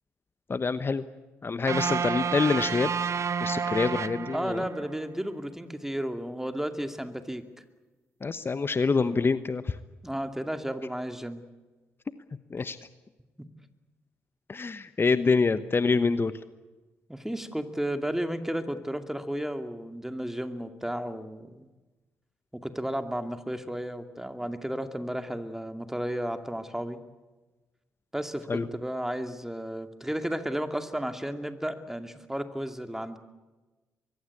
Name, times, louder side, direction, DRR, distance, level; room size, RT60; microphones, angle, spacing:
voice 1, 0.5-1.0 1.4-2.9 3.4-4.6 8.2-9.8 12.5-12.8 14.5-16.3 28.5-28.7, left 4 dB, 35° left, 13 dB, 1.0 m, -26 dB
sound 1, 1.7-4.9, right 6 dB, 50° right, 0.9 m, -30 dB
voice 2, 4.3-7.4 10.0-11.4 17.1-21.7 22.5-27.0 28.1-33.2, equal, 5° right, 7 dB, 2.5 m, -33 dB
24.0 x 22.0 x 8.5 m, 1.2 s
hypercardioid pair, 45°, 7 cm